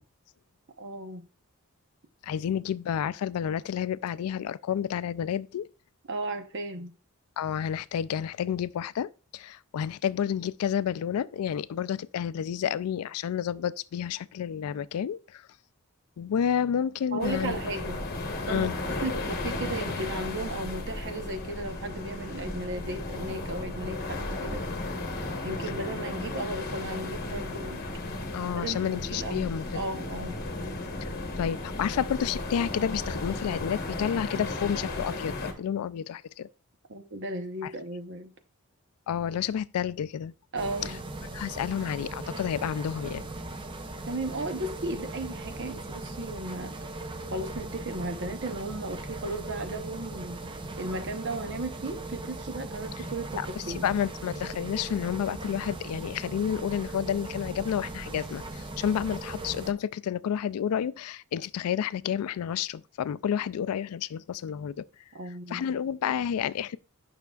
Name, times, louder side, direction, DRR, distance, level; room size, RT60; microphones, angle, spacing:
voice 1, 0.8-1.2 6.1-6.9 17.1-18.0 18.5-18.7 19.0-24.6 25.4-27.8 28.6-30.4 36.9-38.3 40.5-41.0 44.1-46.8 47.3-50.4 50.8-53.9 65.1-65.7, right 2 dB, 55° right, 0.9 m, -35 dB
voice 2, 2.2-5.7 7.4-15.4 16.2-17.6 18.5-18.8 28.3-29.6 31.0-31.1 31.4-36.5 37.6-37.7 39.1-40.3 41.3-43.3 53.4-53.5 53.8-64.8 65.5-66.8, left 8 dB, 80° left, 0.3 m, -30 dB
sound 1, 17.2-35.5, left 2 dB, 45° left, 1.1 m, -35 dB
sound 2, 40.6-59.7, right 2 dB, 20° right, 0.5 m, -39 dB
9.2 x 5.9 x 2.3 m
head